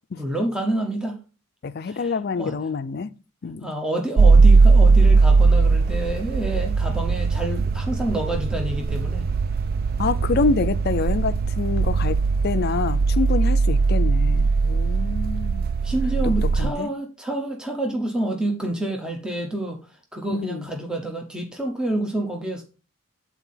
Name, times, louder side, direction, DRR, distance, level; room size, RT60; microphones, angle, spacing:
voice 1, 0.2-1.2 1.8-2.5 3.6-9.3 15.8-19.8 20.1-22.6, right 1 dB, 5° right, 0.8 m, -28 dB
voice 2, 1.6-3.1 3.4-3.7 10.0-12.2 12.4-15.7 16.4-16.9 20.3-20.7, left 4 dB, 50° left, 0.4 m, -26 dB
sound 1, 4.2-16.7, right 4 dB, 45° right, 0.3 m, -19 dB
8.1 x 4.2 x 5.6 m
head